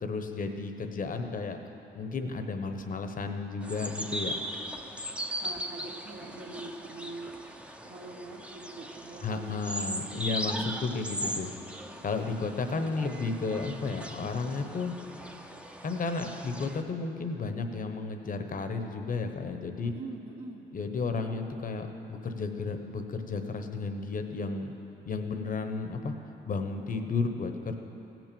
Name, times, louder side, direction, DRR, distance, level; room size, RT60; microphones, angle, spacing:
voice 1, 0.0-1.6 1.9-4.3 9.2-11.5 12.0-15.0 15.8-19.9 20.7-24.7 25.0-26.1 26.4-27.7, left 4 dB, 45° left, 6 dB, 1.0 m, -33 dB
sound 1, 3.6-16.8, equal, 5° right, 0.7 m, -39 dB
voice 2, 5.4-7.3 7.8-10.5 12.7-13.2 19.8-20.7, right 3 dB, 60° right, -4 dB, 1.3 m, -44 dB
16.0 x 6.1 x 6.9 m, 3.0 s
cardioid pair, 90°, 20 cm